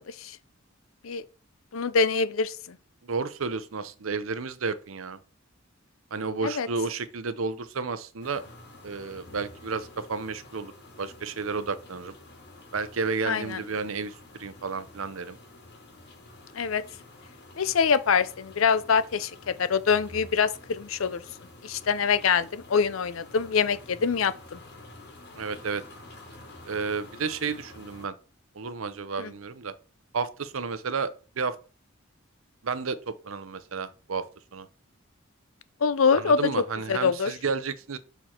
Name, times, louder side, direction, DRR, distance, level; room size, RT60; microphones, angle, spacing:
voice 1, 0.1-0.4 1.0-1.2 1.7-2.8 6.4-6.7 13.3-13.6 16.5-16.8 17.6-21.2 21.6-24.6 29.2-29.3 35.8-36.6 36.9-37.3, left 5 dB, 80° left, 0.6 m, -25 dB
voice 2, 3.0-5.2 6.1-8.4 8.8-10.7 11.0-12.1 12.7-14.1 14.4-15.4 25.4-25.8 26.7-28.1 28.6-29.7 30.1-31.5 32.6-34.2 34.5-34.7 36.2-38.0, right 4 dB, 85° right, 0.7 m, -32 dB
sound 1, 8.2-28.1, left 2 dB, 55° left, 2.5 m, -49 dB
6.7 x 4.5 x 4.4 m
head